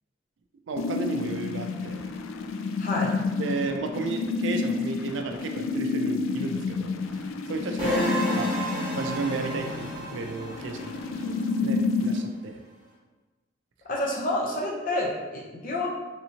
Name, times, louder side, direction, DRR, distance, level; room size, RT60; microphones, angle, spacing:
voice 1, 0.7-2.0 3.3-7.9 8.4-8.5 8.9-11.3 11.6-12.6, right 3 dB, 70° right, 5 dB, 0.3 m, -33 dB
sound 1, 0.8-12.2, left 4 dB, 85° left, 0.3 m, -30 dB
voice 2, 2.8-3.1 7.8-8.3 13.9-15.9, left 1 dB, 45° left, -3 dB, 0.6 m, -28 dB
sound 2, 7.8-11.8, right 1 dB, 20° right, 1.1 m, -33 dB
3.4 x 2.8 x 2.7 m, 1.2 s
head